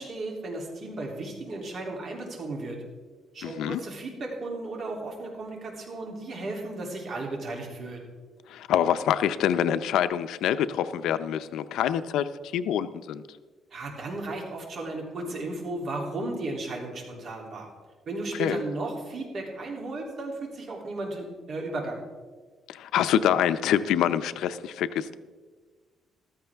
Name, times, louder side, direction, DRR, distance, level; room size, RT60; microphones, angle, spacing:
voice 1, 0.0-2.8 3.3-8.0 13.7-17.7 18.1-22.0, right 2 dB, 45° right, 0 dB, 2.9 m, -35 dB
voice 2, 3.4-3.8 8.5-13.2 18.4-18.6 22.7-25.2, left 10 dB, 90° left, 13 dB, 0.5 m, -26 dB
14.5 x 13.5 x 3.5 m, 1.4 s
cardioid pair, 140°, 0 cm